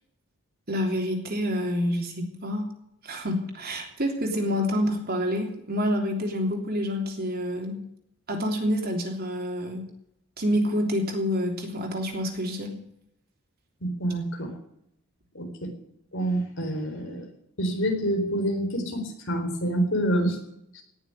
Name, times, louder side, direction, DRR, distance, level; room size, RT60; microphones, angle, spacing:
voice 1, 0.7-2.6 3.0-7.8 8.3-9.8 10.4-12.7, equal, 45° right, 2 dB, 3.2 m, -27 dB
voice 2, 13.8-14.5 15.3-15.5 16.1-17.3 17.6-20.4 20.7-20.8, right 1 dB, 55° left, 3 dB, 4.2 m, -27 dB
18.0 x 7.2 x 9.8 m, 0.75 s
head